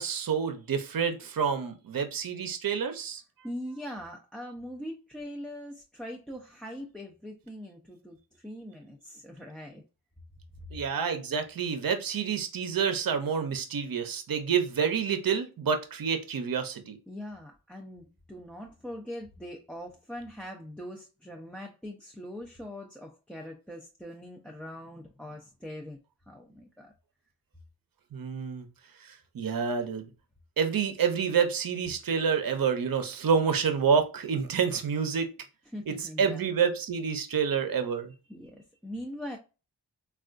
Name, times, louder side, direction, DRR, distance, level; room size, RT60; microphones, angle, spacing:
voice 1, 0.0-3.2 10.7-17.0 28.1-28.7 29.0-29.1 29.3-30.1 30.6-35.3 35.9-38.1, right 6 dB, 55° right, 0.7 m, -28 dB
voice 2, 3.4-9.8 17.1-26.0 26.3-26.9 35.7-36.4 38.3-39.4, equal, ahead, 0.5 m, -42 dB
3.4 x 2.4 x 2.4 m
cardioid pair, 55°, 42 cm